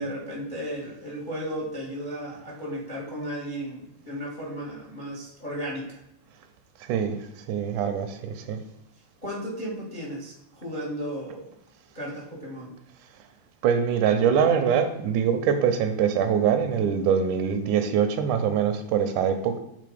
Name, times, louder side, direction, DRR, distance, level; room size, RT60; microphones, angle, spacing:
voice 1, 0.0-6.0 9.2-11.5 11.9-12.7, equal, 65° left, -3 dB, 0.4 m, -34 dB
voice 2, 7.5-8.6 13.6-19.6, right 7 dB, 80° right, 8 dB, 2.0 m, -23 dB
7.6 x 3.7 x 5.0 m, 0.84 s
omnidirectional pair, 3.7 m